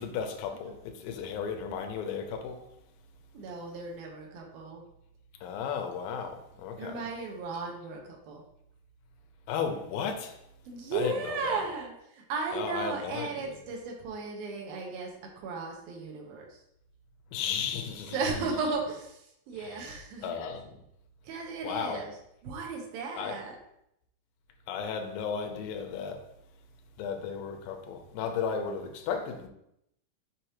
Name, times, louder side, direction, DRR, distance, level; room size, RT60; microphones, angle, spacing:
voice 1, 0.0-2.6 5.4-7.0 9.5-10.4 10.9-11.1 11.4-11.6 12.5-13.5 17.3-18.2 20.2-20.6 21.6-22.0 23.2-23.3 24.7-26.2 27.0-29.5, left 6 dB, 85° left, 2.4 m, -34 dB
voice 2, 3.3-4.8 6.8-8.4 10.7-16.6 18.1-20.3 21.2-22.1 22.4-23.5, right 4 dB, 90° right, 2.9 m, -35 dB
6.8 x 5.0 x 3.0 m
omnidirectional pair, 4.1 m